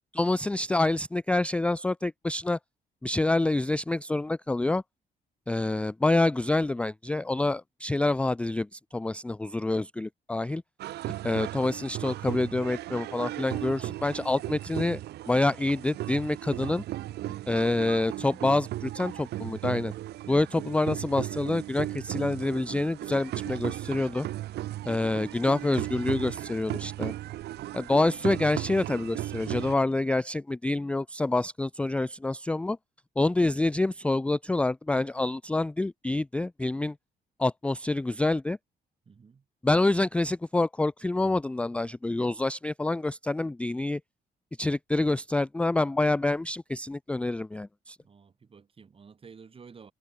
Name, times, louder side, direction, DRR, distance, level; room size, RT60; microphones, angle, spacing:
voice 1, 0.1-2.6 3.0-4.8 5.5-10.6 11.2-15.0 15.3-16.8 17.5-19.9 20.3-24.3 24.9-27.1 27.7-32.8 33.2-37.0 37.4-38.6 39.6-44.0 44.6-48.0, left 2 dB, 5° left, 0.3 m, -27 dB
sound 1, 10.8-29.7, right 15 dB, 90° right, 1.1 m, -36 dB
voice 2, 39.1-39.4 48.0-49.9, right 5 dB, 35° right, 3.8 m, -51 dB
cardioid pair, 125°, 16 cm